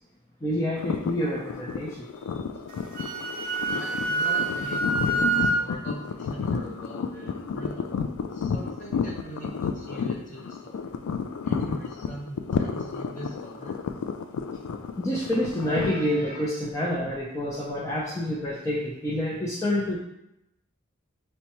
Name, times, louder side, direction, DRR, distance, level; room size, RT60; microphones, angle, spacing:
voice 1, 0.4-2.1 2.3-2.4 15.0-20.0, left 1 dB, 15° left, -6 dB, 0.4 m, -28 dB
sound 1, 0.7-15.9, left 6 dB, 85° left, 0.3 m, -31 dB
Wind instrument woodwind instrument, 2.7-5.6, right 3 dB, 40° right, 0.7 m, -26 dB
voice 2, 3.7-7.9 8.3-11.0 11.4-13.7, right 1 dB, 40° left, -3 dB, 1.0 m, -41 dB
5.3 x 2.2 x 2.9 m, 0.86 s
head